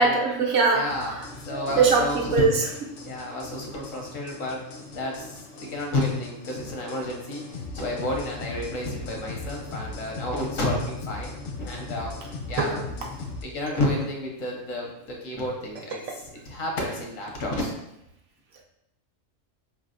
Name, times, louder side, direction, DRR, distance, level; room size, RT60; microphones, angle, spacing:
voice 1, 0.0-2.6 12.6-12.8, right 4 dB, 60° right, 0 dB, 0.9 m, -22 dB
voice 2, 0.7-1.2 1.4-2.5 3.0-4.6 4.9-12.1 12.5-12.8 13.4-17.7, left 1 dB, 80° left, 0 dB, 1.3 m, -31 dB
sound 1, 0.9-13.4, left 3 dB, 55° left, 0.7 m, -39 dB
sound 2, 12.4-17.4, right 3 dB, 85° right, 1.0 m, -39 dB
4.7 x 3.2 x 2.5 m, 0.84 s
omnidirectional pair, 1.3 m